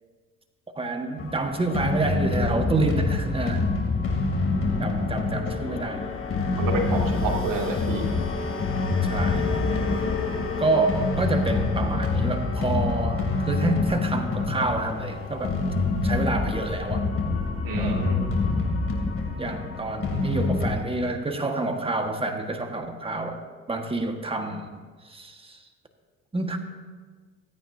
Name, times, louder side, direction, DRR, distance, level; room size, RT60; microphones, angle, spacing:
voice 1, 0.7-3.6 4.8-6.0 9.0-9.5 10.6-15.6 16.0-17.1 17.8-18.1 19.4-23.4 23.7-24.7 25.0-25.6 26.3-26.6, right 2 dB, 15° right, 5 dB, 1.6 m, -28 dB
sound 1, 1.2-20.7, left 3 dB, 35° left, 2.9 m, -26 dB
voice 2, 6.6-8.1 17.6-18.3, right 3 dB, 60° right, -1 dB, 2.5 m, -28 dB
25.0 x 9.3 x 2.8 m, 1.5 s
hypercardioid pair, 70°, 37 cm